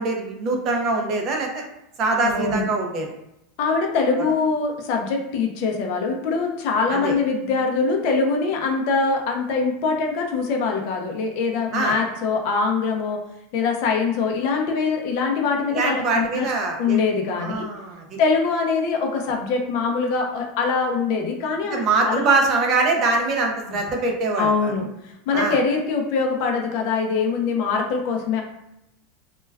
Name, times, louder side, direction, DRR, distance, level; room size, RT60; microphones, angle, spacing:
voice 1, 0.0-1.6 2.0-3.1 6.9-7.1 11.7-12.0 15.7-17.0 17.4-18.2 21.7-24.7 25.3-25.6, right 3 dB, 30° right, 1 dB, 0.4 m, -23 dB
voice 2, 2.2-2.7 3.6-13.2 13.5-16.5 16.8-17.7 18.2-22.3 24.4-28.4, left 4 dB, 45° left, 2 dB, 0.5 m, -23 dB
2.2 x 2.2 x 3.3 m, 0.83 s
supercardioid pair, 175°, 0 cm